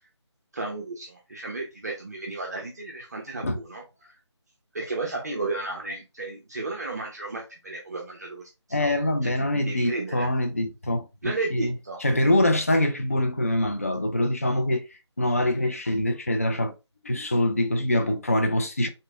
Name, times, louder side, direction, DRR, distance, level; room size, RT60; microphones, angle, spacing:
voice 1, 0.5-4.2 4.7-8.5 8.8-8.9 9.2-10.3 11.2-12.0, right 3 dB, 35° right, 0.6 m, -33 dB
voice 2, 8.7-11.7 12.0-14.8 15.2-16.7 17.0-18.9, left 1 dB, 30° left, 0.4 m, -24 dB
3.8 x 3.2 x 2.3 m
figure-of-eight pair, 160°, 15 cm